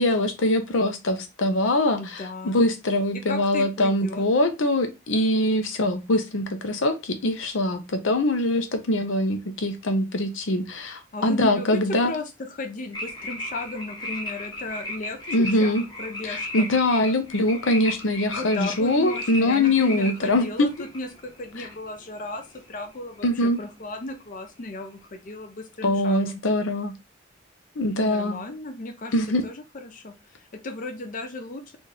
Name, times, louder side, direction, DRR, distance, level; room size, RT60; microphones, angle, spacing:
voice 1, 0.0-12.1 15.3-15.8 16.2-20.7 23.2-23.6 25.8-26.9 27.8-28.4 29.1-29.4, left 1 dB, 80° left, 7 dB, 0.7 m, -23 dB
voice 2, 2.0-2.6 3.3-4.2 11.1-15.2 15.5-16.6 18.3-26.5 28.0-29.1 29.4-31.8, left 2 dB, 45° left, 5 dB, 0.5 m, -35 dB
sound 1, 12.9-23.2 23.4-23.8, left 1 dB, 20° left, 1.1 m, -36 dB
4.0 x 2.5 x 3.3 m, 0.25 s
head